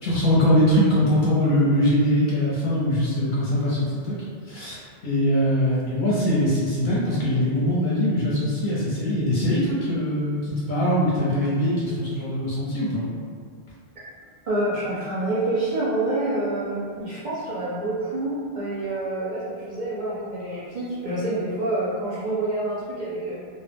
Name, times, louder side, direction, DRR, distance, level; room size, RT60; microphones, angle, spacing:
voice 1, 0.0-4.2 4.5-13.1, equal, 50° left, -8 dB, 0.7 m, -22 dB
voice 2, 14.5-23.3, right 2 dB, 55° right, -8 dB, 0.5 m, -27 dB
2.2 x 2.0 x 3.3 m, 2.1 s
omnidirectional pair, 1.1 m